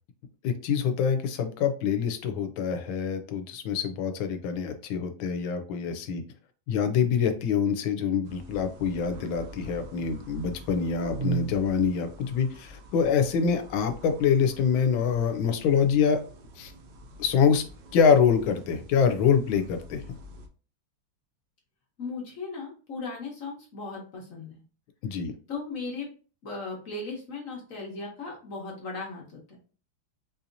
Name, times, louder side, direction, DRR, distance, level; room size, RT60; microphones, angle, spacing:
voice 1, 0.4-6.2 6.7-16.2 16.6-16.7 17.2-17.6 17.9-20.0 25.0-25.3, left 6 dB, 85° left, 7 dB, 1.4 m, -25 dB
sound 1, 8.2-20.5, right 4 dB, 70° right, 1.1 m, -42 dB
voice 2, 22.0-24.6 25.5-26.1 26.4-29.6, left 3 dB, 50° left, -1 dB, 1.2 m, -37 dB
4.4 x 2.7 x 2.5 m, 0.38 s
omnidirectional pair, 2.2 m